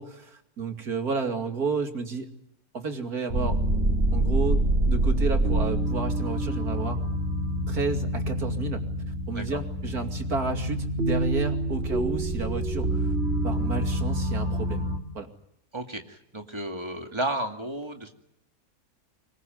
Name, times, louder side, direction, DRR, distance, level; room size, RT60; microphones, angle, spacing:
voice 1, 0.0-2.3 2.7-3.6 4.1-4.6 4.9-7.0 7.7-8.8 9.3-13.2 13.4-14.9 15.1-15.3, right 4 dB, 85° right, 5 dB, 3.1 m, -31 dB
sound 1, 3.3-15.0, right 1 dB, 45° right, 3.1 m, -26 dB
voice 2, 15.7-18.1, right 1 dB, 20° right, 4 dB, 2.5 m, -32 dB
25.5 x 21.0 x 9.3 m, 0.76 s
omnidirectional pair, 1.5 m